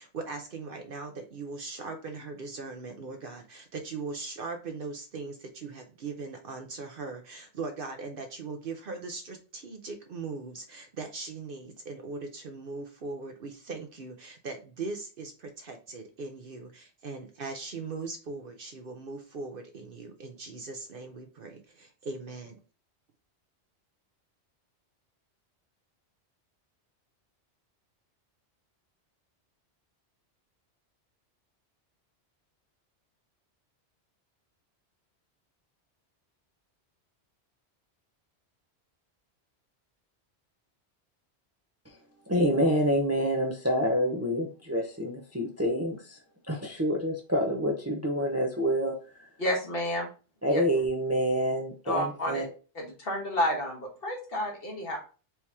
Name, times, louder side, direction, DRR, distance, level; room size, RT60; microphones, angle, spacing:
voice 1, 0.0-22.6, right 4 dB, 60° right, 5 dB, 0.8 m, -39 dB
voice 2, 42.3-46.2 46.5-48.9 50.4-52.4, equal, 15° right, 0 dB, 0.6 m, -27 dB
voice 3, 49.4-50.1 50.4-50.6 51.8-52.5 52.7-55.0, equal, 55° left, 0 dB, 1.5 m, -30 dB
4.6 x 2.9 x 3.4 m, 0.35 s
omnidirectional pair, 1.2 m